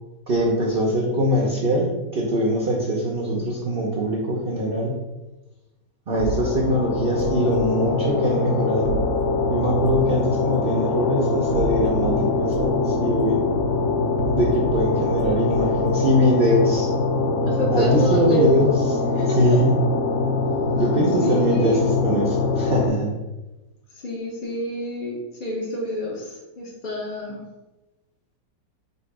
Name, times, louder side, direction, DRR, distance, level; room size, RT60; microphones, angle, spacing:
voice 1, 0.3-5.0 6.1-8.9 9.5-13.5 14.3-16.9 17.7-18.7 19.4-19.7 20.7-23.1, equal, 70° right, -2 dB, 0.5 m, -22 dB
sound 1, 6.1-22.9, left 3 dB, 75° left, 1.5 m, -23 dB
sound 2, 6.2-7.7 8.9-10.2 11.4-12.2 12.5-14.9 15.2-15.8, right 3 dB, 90° right, 1.3 m, -32 dB
voice 2, 17.4-18.6 19.1-19.6 20.8-20.9 21.2-21.9 23.9-27.4, equal, 60° left, -3 dB, 0.5 m, -28 dB
3.9 x 2.6 x 4.7 m, 1.1 s
omnidirectional pair, 2.0 m